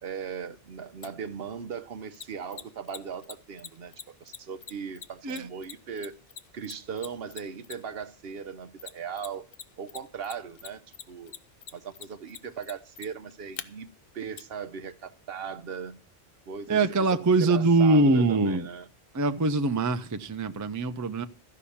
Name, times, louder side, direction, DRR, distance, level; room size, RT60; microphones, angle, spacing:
voice 1, 0.0-6.2 6.5-9.5 9.8-10.8 11.1-11.3 11.7-13.9 14.1-16.0 16.5-16.8 17.1-18.9, right 6 dB, 60° right, 0.9 m, -38 dB
Mechanisms, 1.0-1.1 2.1-8.0 8.8-9.6 9.9-13.6 14.4-14.5, left 7 dB, 55° left, 0.9 m, -42 dB
voice 2, 16.7-18.7 19.1-21.2, right 2 dB, 25° right, 0.5 m, -23 dB
13.0 x 5.6 x 8.5 m
omnidirectional pair, 1.2 m